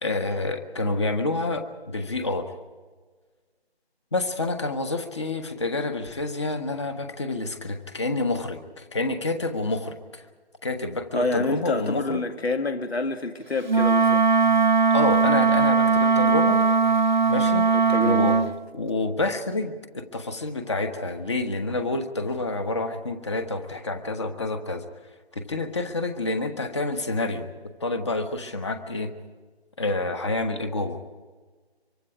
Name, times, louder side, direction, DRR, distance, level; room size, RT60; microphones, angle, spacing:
voice 1, 0.0-2.4 4.1-10.2 10.6-12.2 14.9-16.6 17.3-17.7 18.0-18.4 18.7-24.8 25.3-27.5 27.8-29.1 29.8-31.0, left 2 dB, 25° left, 7 dB, 1.4 m, -28 dB
voice 2, 11.1-14.5 17.7-18.5, left 3 dB, 75° left, 7 dB, 1.9 m, -28 dB
Wind instrument woodwind instrument, 13.7-18.5, right 5 dB, 45° right, 0.7 m, -19 dB
24.5 x 24.0 x 4.9 m, 1.4 s
figure-of-eight pair, 165°, 32 cm